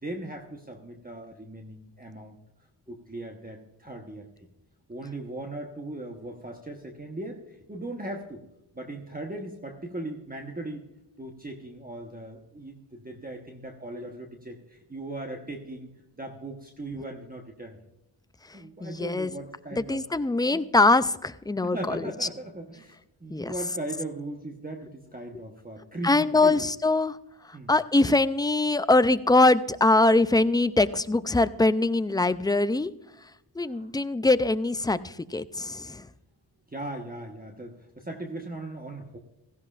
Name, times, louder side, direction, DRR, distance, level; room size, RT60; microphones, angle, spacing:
voice 1, 0.0-2.4 2.9-4.3 4.9-8.4 8.7-10.8 11.2-15.9 16.2-17.8 18.5-20.0 20.5-20.6 21.6-26.6 27.5-27.7 33.6-33.9 36.7-39.2, right 2 dB, 20° right, 2 dB, 1.2 m, -38 dB
voice 2, 18.5-19.3 19.7-22.1 23.3-23.5 26.0-27.2 27.5-32.9 33.6-36.1, left 2 dB, 10° left, 13 dB, 0.4 m, -23 dB
16.5 x 15.0 x 2.5 m, 0.91 s
wide cardioid pair, 80°, 46 cm